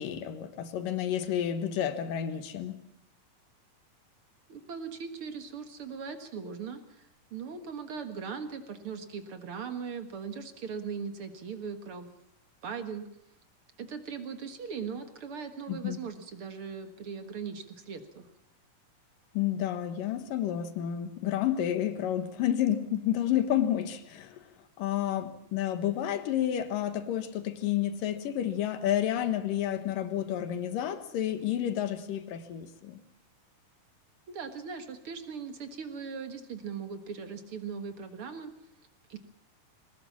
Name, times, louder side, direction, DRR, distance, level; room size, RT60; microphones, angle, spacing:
voice 1, 0.0-2.8 15.7-16.0 19.3-24.4 24.8-33.0, left 11 dB, 75° left, 3.0 m, -30 dB
voice 2, 4.5-12.1 12.6-13.1 13.8-18.3 34.3-38.5 39.1-39.2, right 6 dB, 50° right, 2.0 m, -39 dB
22.0 x 19.0 x 7.3 m
omnidirectional pair, 4.0 m